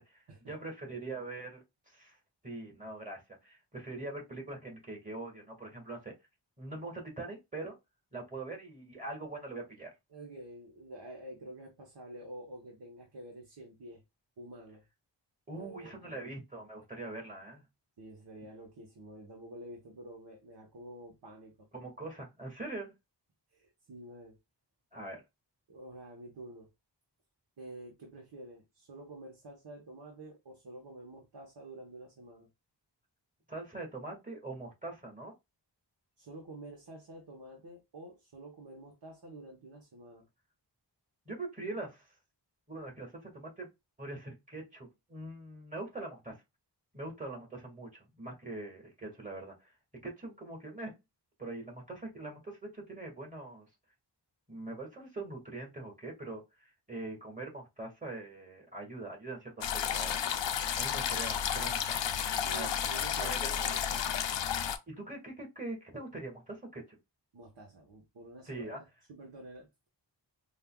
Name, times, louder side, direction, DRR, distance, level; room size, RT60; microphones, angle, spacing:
voice 1, 0.5-2.2 2.4-6.1 6.6-7.8 8.1-9.9 15.5-17.6 21.7-22.9 24.9-25.2 33.5-35.3 41.3-42.1 42.7-43.7 44.0-46.4 46.9-49.7 50.0-50.9 51.4-53.7 54.5-60.2 60.8-62.7 63.2-63.5 64.9-67.0 68.5-68.8, right 2 dB, 20° right, 1.8 m, -43 dB
voice 2, 10.1-14.0 14.4-14.9 15.5-16.3 18.0-21.7 23.5-24.4 25.7-26.7 27.6-32.5 36.2-40.3 62.4-64.2 67.3-69.9, right 1 dB, 70° right, 1.1 m, -49 dB
sound 1, 59.6-64.8, left 8 dB, 85° left, 0.5 m, -32 dB
5.3 x 2.4 x 2.3 m
wide cardioid pair, 95°, 43 cm